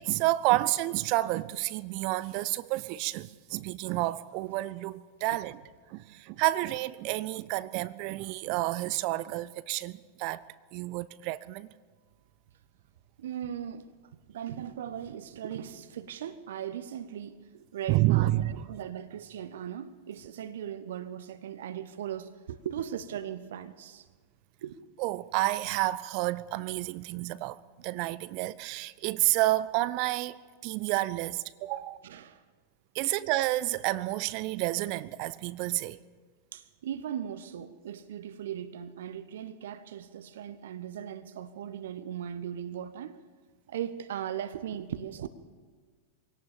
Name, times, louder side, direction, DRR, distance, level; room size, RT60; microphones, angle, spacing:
voice 1, 0.1-5.6 5.9-10.5 10.7-11.7 17.9-18.7 25.0-32.0 32.9-36.0, right 18 dB, 45° right, 0.6 m, -30 dB
voice 2, 13.2-13.9 14.3-24.1 24.6-24.8 31.8-32.4 33.0-33.1 36.5-43.2 43.7-45.3, right 9 dB, 60° right, 1.0 m, -38 dB
23.5 x 17.5 x 7.2 m
figure-of-eight pair, 90°, 0 cm